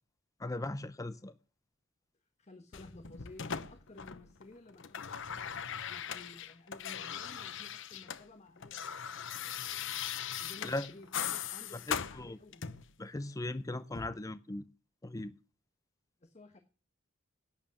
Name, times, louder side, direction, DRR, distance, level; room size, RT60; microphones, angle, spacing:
voice 1, 0.4-1.3 10.6-10.9 11.9-12.4 13.0-14.6 15.0-15.3, left 2 dB, 15° left, 0.5 m, -38 dB
voice 2, 2.4-9.9 10.2-12.6 16.2-16.6, left 2 dB, 35° left, 1.3 m, -55 dB
sound 1, 2.7-4.4 4.7-8.2 8.5-12.9 13.9-14.1, left 8 dB, 65° left, 0.9 m, -39 dB
11.0 x 9.2 x 7.3 m
head